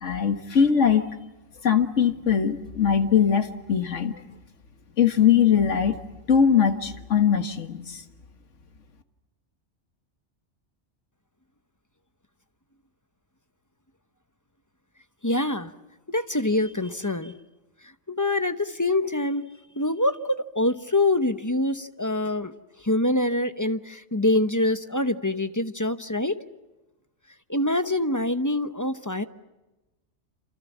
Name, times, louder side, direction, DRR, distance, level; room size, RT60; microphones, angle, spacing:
voice 1, 0.0-1.1 1.6-4.1 5.0-5.9 6.3-8.0, left 7 dB, 85° left, 8 dB, 1.9 m, -21 dB
voice 2, 15.2-15.7 16.1-17.3 18.1-19.5 19.8-22.5 22.8-26.4 27.5-29.2, left 1 dB, 20° left, 10 dB, 0.8 m, -25 dB
28.5 x 27.5 x 7.3 m, 1.1 s
omnidirectional pair, 1.2 m